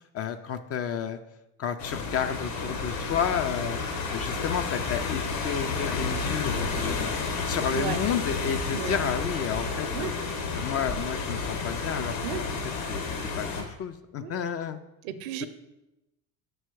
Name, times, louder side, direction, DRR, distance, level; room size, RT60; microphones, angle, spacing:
voice 1, 0.1-1.2 1.6-7.2 7.5-10.1 10.5-12.5 12.9-14.8 15.4-15.5, left 8 dB, 35° left, 9 dB, 0.4 m, -31 dB
sound 1, 1.8-13.6, left 4 dB, 70° left, 1.6 m, -31 dB
voice 2, 15.0-15.5, right 10 dB, 65° right, 12 dB, 0.7 m, -33 dB
5.9 x 4.6 x 4.6 m, 0.93 s
hypercardioid pair, 65°, 49 cm